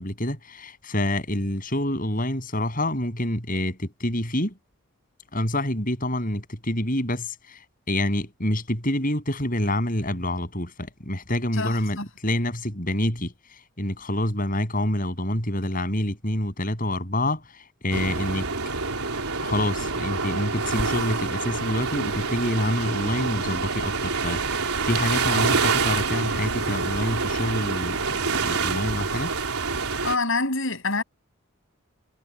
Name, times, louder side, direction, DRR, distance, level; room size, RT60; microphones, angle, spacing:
voice 1, 0.0-4.5 5.3-7.6 7.9-18.5 19.4-28.0 28.3-29.3, left 1 dB, 40° left, 8.0 m, -27 dB
voice 2, 11.5-12.1 30.0-31.0, left 3 dB, 60° left, 7.6 m, -26 dB
sound 1, 17.9-30.2, right 4 dB, 85° right, 4.1 m, -27 dB
head